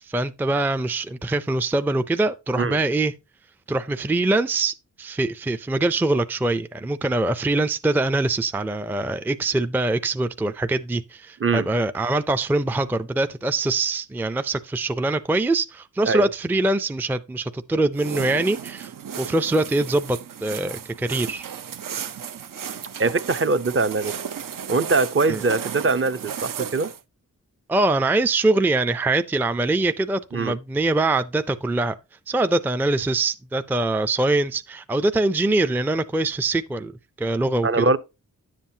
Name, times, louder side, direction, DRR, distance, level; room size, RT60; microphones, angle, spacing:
voice 1, 0.0-3.1 3.7-18.9 19.2-21.4 25.3-25.4 27.7-31.9 32.3-36.9 37.2-37.9, right 2 dB, 5° right, 0.4 m, -23 dB
sound 1, 17.9-27.0, right 8 dB, 75° right, 0.7 m, -34 dB
voice 2, 23.0-24.1 24.7-26.9 30.3-30.6 37.6-38.0, right 3 dB, 40° right, 0.7 m, -22 dB
10.5 x 7.4 x 2.7 m
wide cardioid pair, 140°, 33 cm